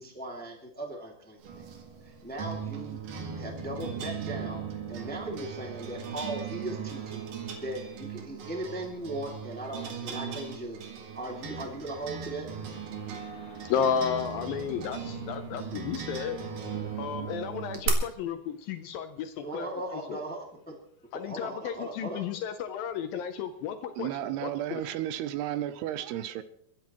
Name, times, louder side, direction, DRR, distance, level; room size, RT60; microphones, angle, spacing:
voice 1, 0.0-1.7 2.0-3.0 3.3-7.3 7.5-10.8 11.1-12.5 19.4-20.7 21.2-22.2, right 1 dB, 5° left, 0.8 m, -38 dB
sound 1, 1.4-17.9, right 7 dB, 60° right, 3.3 m, -38 dB
voice 2, 13.1-16.4 17.0-20.2 21.1-24.1 24.4-24.8, left 7 dB, 75° left, 2.2 m, -33 dB
voice 3, 24.0-26.4, right 12 dB, 80° right, 2.7 m, -33 dB
30.0 x 11.5 x 3.0 m
omnidirectional pair, 4.7 m